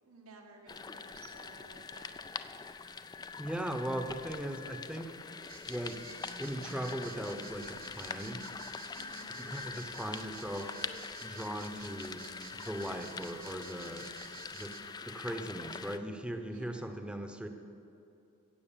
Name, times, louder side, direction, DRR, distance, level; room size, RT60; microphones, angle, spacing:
voice 1, 0.0-2.2 8.9-9.5 16.4-16.8, right 3 dB, 75° right, 2 dB, 1.9 m, -56 dB
sound 1, 0.7-16.0, left 5 dB, 20° left, 0.3 m, -44 dB
voice 2, 3.4-5.2 5.7-6.0 6.4-8.4 9.4-10.8 11.2-12.3 12.5-14.8 15.0-17.5, equal, 5° right, 5 dB, 0.8 m, -39 dB
sound 2, 5.5-14.8, right 6 dB, 40° right, 1.0 m, -53 dB
16.0 x 7.8 x 7.4 m, 2.8 s
head